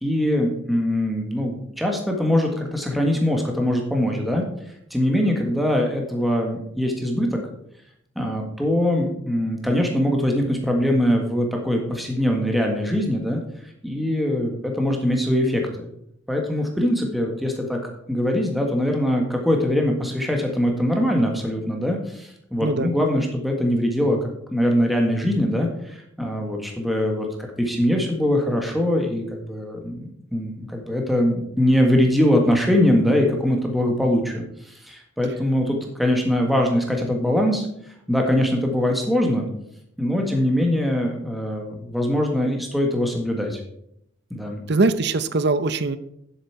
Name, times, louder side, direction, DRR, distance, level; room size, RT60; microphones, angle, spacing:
voice 1, 0.0-4.4 4.9-7.4 8.1-15.9 16.3-17.8 18.1-37.7 38.1-39.5 40.0-43.6 44.3-44.6, left 1 dB, ahead, 1 dB, 1.5 m, -22 dB
voice 2, 44.7-46.0, right 3 dB, 55° right, 13 dB, 0.7 m, -21 dB
11.0 x 8.0 x 4.6 m, 0.75 s
head